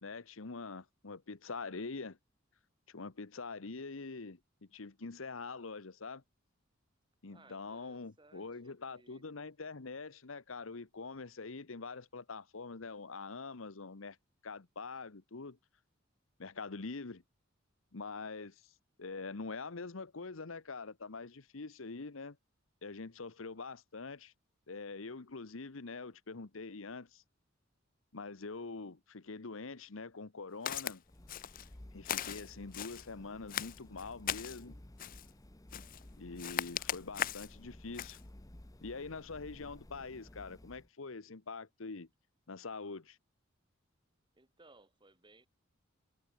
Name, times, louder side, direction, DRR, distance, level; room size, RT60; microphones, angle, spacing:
voice 1, 0.0-2.2 2.9-6.2 7.2-14.2 14.4-15.6 16.4-17.2 17.9-18.7 19.0-22.4 22.8-24.3 24.7-27.2 28.1-31.0 31.9-34.8 36.2-38.2 38.8-42.1 42.5-43.2, left 4 dB, 85° left, 1.1 m, -44 dB
voice 2, 7.3-9.5 44.3-45.5, right 2 dB, 25° right, 3.6 m, -63 dB
Walk footsteps, 30.7-31.0 31.3-31.7 32.0-33.1 33.5-34.6 35.0-35.3 35.7-36.0 36.4-37.5 37.9-38.2, left 10 dB, 45° left, 0.5 m, -38 dB
sound 1, 31.0-40.9, left 1 dB, 15° left, 0.9 m, -55 dB
head